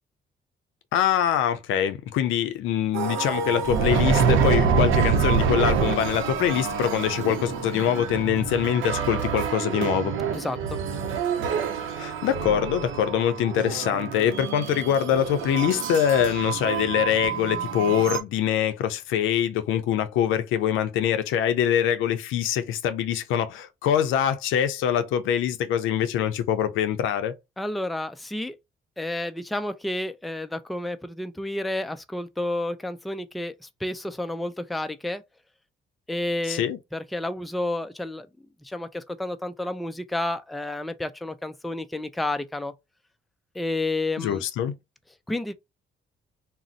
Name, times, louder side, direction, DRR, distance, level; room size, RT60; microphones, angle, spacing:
voice 1, 0.9-10.2 12.0-27.3 36.5-36.8 44.2-44.8, left 9 dB, 90° left, 0.5 m, -24 dB
sound 1, 2.9-18.2, right 6 dB, 80° right, 0.6 m, -26 dB
voice 2, 10.3-10.8 27.6-28.6 29.0-35.2 36.1-36.6 36.9-38.3 38.6-42.7 43.5-44.4 45.3-45.5, left 1 dB, ahead, 0.3 m, -30 dB
2.5 x 2.0 x 3.7 m
cardioid pair, 90°, 20 cm